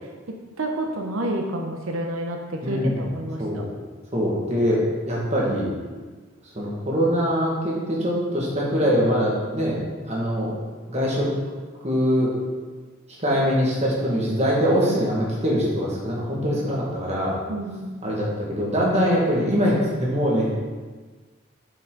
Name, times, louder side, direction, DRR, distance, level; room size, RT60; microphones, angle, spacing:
voice 1, 0.6-3.7 17.5-17.8, right 1 dB, 90° right, 2 dB, 0.8 m, -29 dB
voice 2, 2.6-3.1 3.4-3.7 4.1-5.7 6.6-9.8 10.1-10.6 10.9-11.3 11.8-12.3 13.2-17.4 18.0-20.5, equal, 30° right, -5 dB, 1.9 m, -23 dB
8.6 x 5.9 x 3.9 m, 1.4 s
head